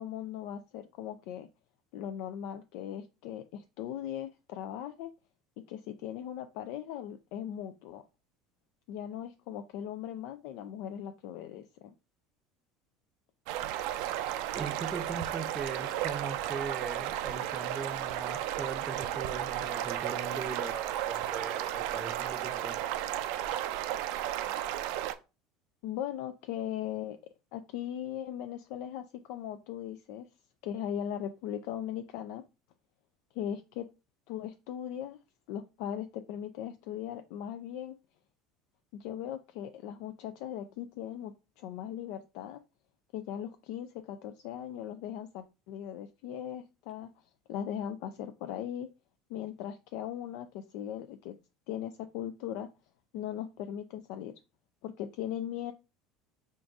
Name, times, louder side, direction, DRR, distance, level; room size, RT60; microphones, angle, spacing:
voice 1, 0.0-1.5 1.9-5.1 5.7-8.0 8.9-11.6 25.8-27.2 27.5-30.3 30.6-32.4 33.3-33.8 34.3-35.2 35.5-37.9 38.9-42.6 43.1-47.1 47.5-48.9 49.3-51.3 51.7-52.7 53.1-54.3 54.8-55.7, left 10 dB, 70° left, 8 dB, 0.3 m, -39 dB
sound 1, 13.5-25.1, right 12 dB, 75° right, 0.3 m, -34 dB
voice 2, 14.5-22.8, right 5 dB, 30° right, 9 dB, 0.6 m, -39 dB
3.8 x 2.5 x 3.5 m, 0.29 s
supercardioid pair, 100°, 0 cm